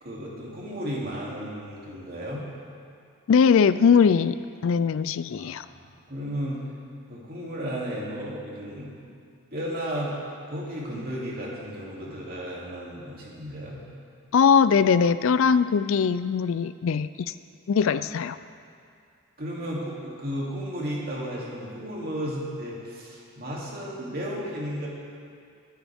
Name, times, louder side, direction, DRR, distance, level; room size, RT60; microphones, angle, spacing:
voice 1, 0.0-2.4 5.4-5.6 6.1-6.6 7.1-8.9 9.5-10.2 10.5-13.8 17.8-17.9 19.4-24.9, equal, 45° right, -5 dB, 2.8 m, -33 dB
voice 2, 3.3-4.4 4.6-5.7 14.3-17.3 17.7-18.4, left 6 dB, 60° left, 14 dB, 0.3 m, -21 dB
22.5 x 10.0 x 3.6 m, 2.3 s
head